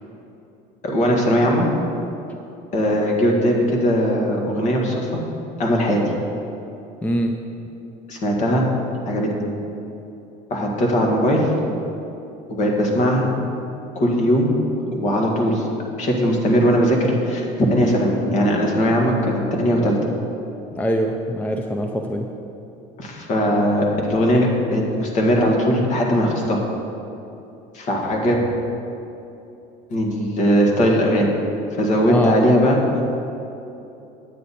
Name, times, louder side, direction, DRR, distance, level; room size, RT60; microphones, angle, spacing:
voice 1, 0.8-1.7 2.7-5.1 5.6-6.0 8.1-8.6 9.1-9.3 10.5-11.5 12.5-13.3 14.0-14.5 14.9-15.7 16.0-20.0 23.0-26.6 27.7-28.4 29.9-31.3 31.8-32.8, equal, 50° left, 0 dB, 1.8 m, -19 dB
voice 2, 20.8-22.3 32.1-32.4, equal, 10° left, 3 dB, 0.5 m, -22 dB
9.2 x 8.0 x 4.2 m, 2.9 s
cardioid pair, 120°, 16 cm